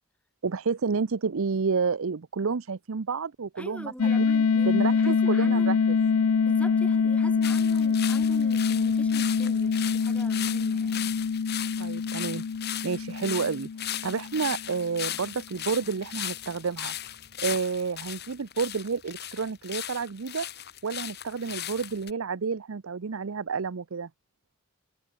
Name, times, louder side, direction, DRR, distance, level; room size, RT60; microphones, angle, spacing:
voice 1, 0.4-4.3 4.7-6.0 11.8-12.4 12.8-16.9 17.4-20.5 20.8-24.1, right 5 dB, 80° right, 0.6 m, -30 dB
voice 2, 3.6-5.8 6.4-11.2, equal, 5° left, 2.0 m, -43 dB
sound 1, 4.0-14.7, left 5 dB, 90° left, 0.5 m, -25 dB
sound 2, 7.4-22.1, left 11 dB, 50° left, 2.8 m, -37 dB
head